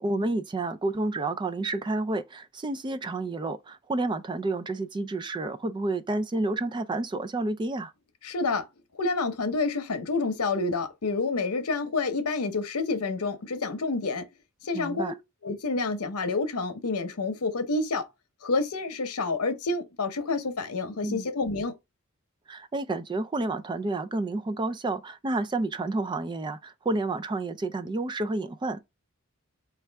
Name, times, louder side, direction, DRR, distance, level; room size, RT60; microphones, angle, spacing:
voice 1, 0.0-7.9 14.7-15.1 21.0-21.3 22.5-28.8, right 2 dB, 20° right, 0.3 m, -30 dB
voice 2, 8.2-8.6 8.9-14.2 14.6-15.1 15.4-18.1 18.4-21.7, left 3 dB, 90° left, 0.8 m, -28 dB
4.2 x 2.4 x 3.3 m
head